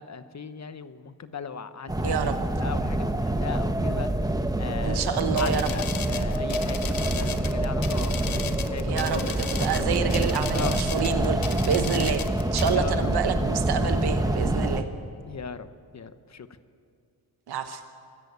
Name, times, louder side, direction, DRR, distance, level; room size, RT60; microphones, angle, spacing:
voice 1, 0.0-4.1 4.6-9.2 10.5-10.8 12.6-13.1 15.3-15.7 15.9-16.5, left 6 dB, 45° left, 12 dB, 1.0 m, -37 dB
sound 1, 1.9-14.8, right 1 dB, 10° right, 1.1 m, -26 dB
voice 2, 2.0-2.3 4.8-5.7 8.8-12.2 12.5-14.8 17.5-17.8, right 7 dB, 80° right, 8 dB, 1.1 m, -28 dB
sound 2, 5.1-12.8, left 7 dB, 60° left, 1.4 m, -36 dB
24.5 x 13.5 x 8.2 m, 2.5 s
cardioid pair, 90°, 38 cm